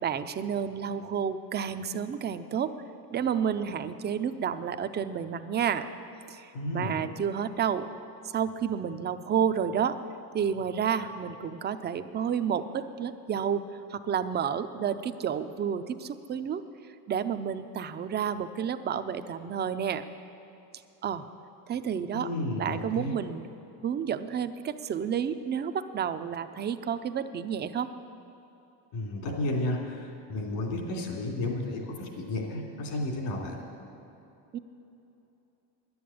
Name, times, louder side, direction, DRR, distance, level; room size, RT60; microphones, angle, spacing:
voice 1, 0.0-2.7 3.1-5.9 6.3-7.9 8.3-10.0 10.3-13.6 13.9-16.6 17.1-20.0 21.0-21.2 21.7-22.3 22.6-23.5 23.8-27.9 34.5-34.6, right 8 dB, 25° right, 10 dB, 0.3 m, -30 dB
voice 2, 6.5-7.0 22.1-23.1 28.9-33.6, left 1 dB, 75° left, 0 dB, 3.2 m, -32 dB
11.0 x 9.5 x 8.5 m, 2.9 s
cardioid pair, 125°, 47 cm